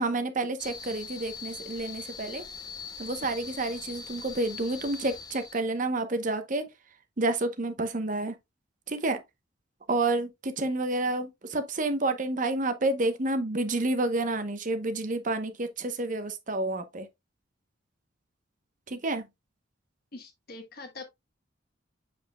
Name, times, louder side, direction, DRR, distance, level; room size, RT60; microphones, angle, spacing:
voice 1, 0.0-2.4 3.0-6.7 7.2-8.4 8.9-9.2 9.9-17.1 18.9-19.3, right 2 dB, 40° right, 0.9 m, -29 dB
sound 1, 0.6-5.6, left 5 dB, 20° left, 0.7 m, -42 dB
voice 2, 20.1-21.0, left 3 dB, 55° left, 1.2 m, -43 dB
7.2 x 5.9 x 2.2 m
head